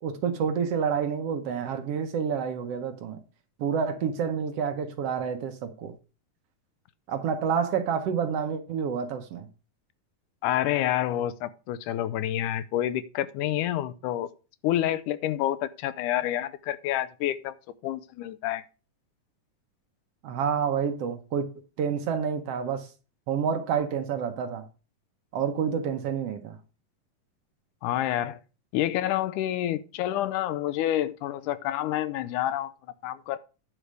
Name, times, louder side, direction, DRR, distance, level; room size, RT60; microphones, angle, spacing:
voice 1, 0.0-3.2 3.6-5.9 7.1-9.5 20.2-21.5 21.8-22.9 23.3-24.6 25.3-26.6, right 7 dB, 65° right, 1.6 m, -28 dB
voice 2, 10.4-14.3 14.6-17.6 17.8-18.6 27.8-28.4 28.7-32.7 33.0-33.4, left 12 dB, 85° left, 2.2 m, -28 dB
10.0 x 4.9 x 6.3 m
omnidirectional pair, 3.6 m